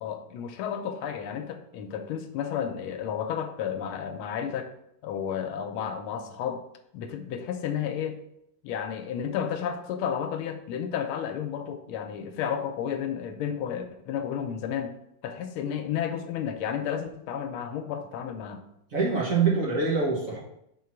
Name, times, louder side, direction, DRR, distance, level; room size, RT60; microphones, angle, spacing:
voice 1, 0.0-4.7 5.0-6.6 6.9-8.2 8.6-14.9 15.2-18.6, left 8 dB, 80° left, 7 dB, 1.5 m, -32 dB
voice 2, 18.9-20.4, right 4 dB, 45° right, -4 dB, 1.6 m, -25 dB
4.9 x 3.8 x 5.8 m, 0.79 s
omnidirectional pair, 2.3 m